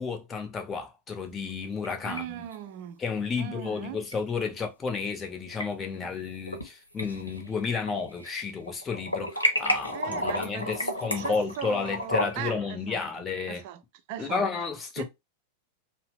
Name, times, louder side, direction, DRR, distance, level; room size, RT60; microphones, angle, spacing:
voice 1, 0.0-2.4 3.0-13.6 14.2-15.0, left 5 dB, 20° left, 0.8 m, -32 dB
sound 1, 1.5-2.2 2.5-2.6 4.1-4.2 5.3-5.6 6.2-6.7 7.0-8.3 8.6-12.6, equal, 85° left, 0.7 m, -31 dB
voice 2, 2.0-3.0 3.4-4.1 9.7-13.8 14.1-14.5 15.0-15.1, right 11 dB, 45° right, 0.5 m, -39 dB
2.6 x 2.1 x 3.4 m
figure-of-eight pair, 90°, 0 cm